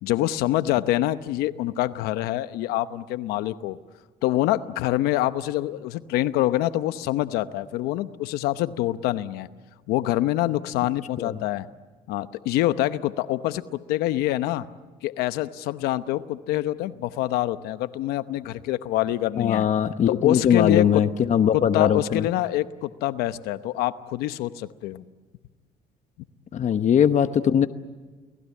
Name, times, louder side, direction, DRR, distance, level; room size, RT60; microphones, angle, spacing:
voice 1, 0.0-3.8 4.2-9.5 9.9-11.7 12.1-14.6 15.0-19.7 20.1-21.0 21.5-25.0, left 14 dB, 90° left, 13 dB, 0.9 m, -26 dB
voice 2, 19.4-22.2 26.5-27.7, left 8 dB, 50° left, 11 dB, 1.0 m, -20 dB
30.0 x 19.0 x 8.4 m, 1.4 s
cardioid pair, 90°, 16 cm